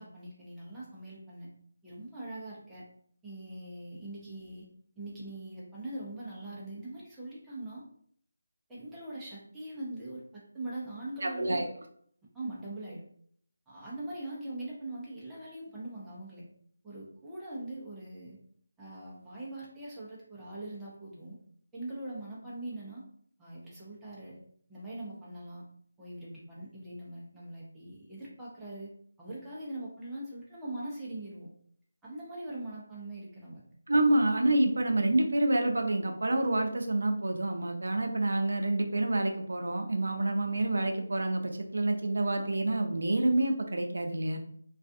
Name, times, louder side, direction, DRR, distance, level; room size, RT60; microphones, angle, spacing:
voice 1, 0.0-1.5 1.8-2.8 3.2-4.7 5.0-7.8 8.7-11.6 12.3-13.0 13.7-16.5 16.8-18.4 18.8-21.4 21.7-23.0 23.4-24.4 24.7-25.6 26.0-31.5 32.0-33.6, right 1 dB, 5° right, -8 dB, 0.6 m, -42 dB
voice 2, 11.2-11.7 33.9-44.4, right 2 dB, 75° right, 4 dB, 0.5 m, -28 dB
2.4 x 2.4 x 2.5 m, 0.63 s
figure-of-eight pair, 165°, 0 cm